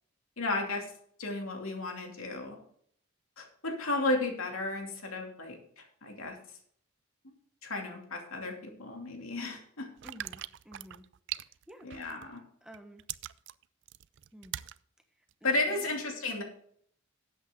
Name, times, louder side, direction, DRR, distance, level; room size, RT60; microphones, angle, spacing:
voice 1, 0.4-0.9 1.2-2.6 3.4-6.4 7.6-9.9 11.8-12.4 15.4-16.4, left 2 dB, 75° left, 2 dB, 2.6 m, -33 dB
voice 2, 10.0-11.1 11.7-11.9 12.6-13.0 14.3-14.6 15.4-16.0, equal, 5° right, 5 dB, 1.2 m, -51 dB
sound 1, 10.0-12.4 12.7-14.8 15.3-15.4, right 13 dB, 55° right, 0.4 m, -41 dB
12.5 x 8.3 x 3.7 m, 0.63 s
head